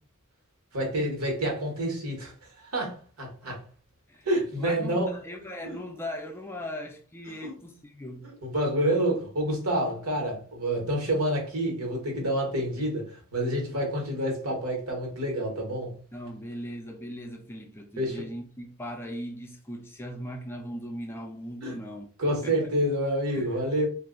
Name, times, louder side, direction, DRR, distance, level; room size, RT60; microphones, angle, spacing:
voice 1, 0.7-3.6 4.2-5.1 5.6-5.7 7.4-7.5 8.4-15.9 18.0-18.2 21.6-21.8 22.2-23.8, right 1 dB, 80° right, 1.4 m, -28 dB
voice 2, 4.6-8.3 16.1-22.1 22.4-22.7 23.3-23.6, equal, 10° left, 0.4 m, -39 dB
2.5 x 2.2 x 3.8 m
head